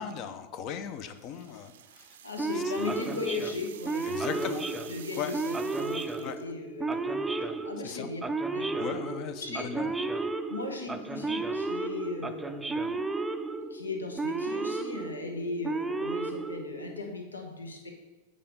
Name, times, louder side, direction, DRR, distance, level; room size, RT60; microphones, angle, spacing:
voice 1, 0.0-2.2 2.8-3.0 4.1-4.6 5.2-5.3 6.2-6.4 7.8-8.1 8.8-9.9, left 8 dB, 40° left, 10 dB, 0.7 m, -37 dB
sound 1, 0.9-6.5, right 10 dB, 60° right, 0.5 m, -50 dB
voice 2, 2.2-7.2 7.6-8.3 8.5-9.0 9.4-9.7 10.5-13.0 13.7-17.9, left 3 dB, 75° left, 3 dB, 1.1 m, -38 dB
Male speech man speaking / Siren, 2.4-17.1, right 3 dB, 5° right, 0.5 m, -33 dB
8.7 x 5.0 x 5.4 m, 1.2 s
figure-of-eight pair, 90°, 0 cm